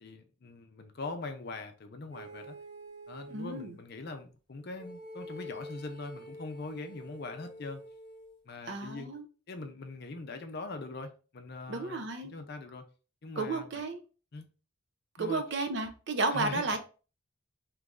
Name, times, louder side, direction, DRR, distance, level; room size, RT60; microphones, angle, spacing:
voice 1, 0.0-2.6 3.1-7.8 8.5-9.1 9.5-12.8 13.2-13.8 14.3-14.4 15.2-15.4 16.3-16.8, left 3 dB, 50° left, 0.5 m, -42 dB
sound 1, 2.1-3.8 4.8-8.4, equal, 20° right, 1.1 m, -47 dB
voice 2, 3.3-3.7 8.7-9.2 11.7-12.3 13.4-14.0 15.2-16.8, right 3 dB, 55° right, 0.5 m, -32 dB
3.0 x 2.5 x 3.5 m
head